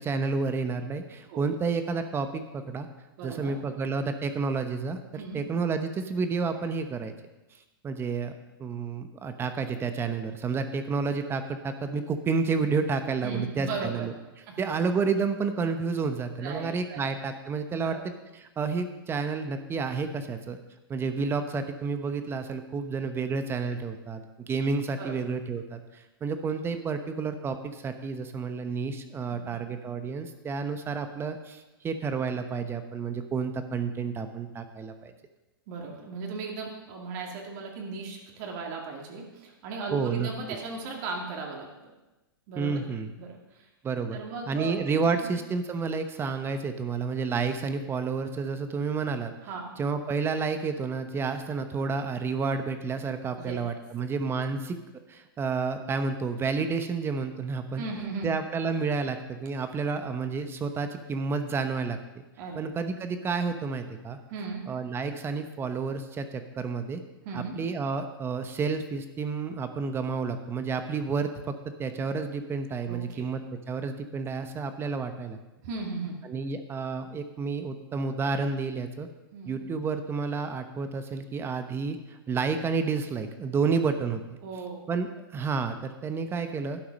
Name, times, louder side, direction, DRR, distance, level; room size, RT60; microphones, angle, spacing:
voice 1, 0.0-2.9 3.2-7.1 7.8-8.3 8.6-14.1 14.6-18.1 18.6-20.6 20.9-24.2 24.5-35.1 39.9-40.3 42.6-43.1 43.8-44.2 44.5-49.3 49.8-54.8 55.1-57.8 58.2-62.0 62.6-64.2 64.7-67.0 67.3-71.5 71.8-75.4 76.2-79.1 79.5-84.2 84.9-86.8, right 4 dB, 20° right, 8 dB, 0.9 m, -30 dB
voice 2, 3.2-3.6 5.1-5.4 13.2-14.1 14.5-14.7 16.4-17.1 17.7-18.0 21.0-21.1 25.0-25.1 29.3-29.6 35.7-41.9 42.5-42.8 43.2-43.7 44.1-44.8 45.2-45.3 49.4-49.7 53.4-53.7 57.8-58.3 62.4-62.6 64.3-64.6 67.2-67.5 72.9-73.3 75.6-76.2 79.3-79.6 84.4-84.8, right 4 dB, 50° right, 0 dB, 2.4 m, -37 dB
12.0 x 8.5 x 5.3 m, 1.1 s
hypercardioid pair, 125°, 12 cm